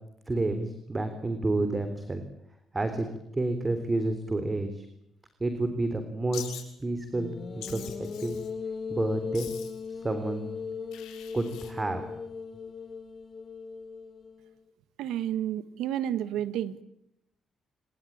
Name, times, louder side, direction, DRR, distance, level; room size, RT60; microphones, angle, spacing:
voice 1, 0.3-2.2 2.7-3.1 3.3-4.9 5.4-8.4 8.9-9.5 9.9-10.5 11.3-12.1, right 2 dB, 20° right, 8 dB, 3.6 m, -30 dB
Wild animals, 6.3-6.6 7.6-8.5 9.3-9.9 10.9-11.7, left 11 dB, 90° left, 6.6 m, -43 dB
sound 1, 7.1-14.5, left 5 dB, 40° left, 3.3 m, -38 dB
voice 2, 15.0-16.8, right 11 dB, 90° right, 14 dB, 1.7 m, -30 dB
27.0 x 21.5 x 8.8 m, 0.82 s
cardioid pair, 90°, 0 cm